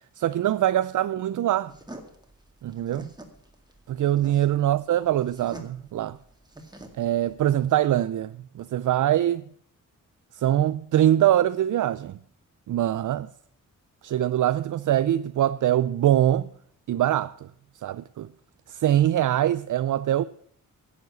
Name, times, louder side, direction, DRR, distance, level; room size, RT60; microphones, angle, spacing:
voice 1, 0.2-1.7 2.6-3.1 3.9-6.2 7.0-9.4 10.3-12.1 12.7-13.3 14.0-16.5 16.9-17.5 17.8-18.3 18.7-20.2, right 12 dB, 65° right, 0.4 m, -23 dB
sound 1, 1.7-7.7, right 1 dB, 10° right, 2.0 m, -46 dB
11.0 x 7.3 x 9.4 m
wide cardioid pair, 110°, 33 cm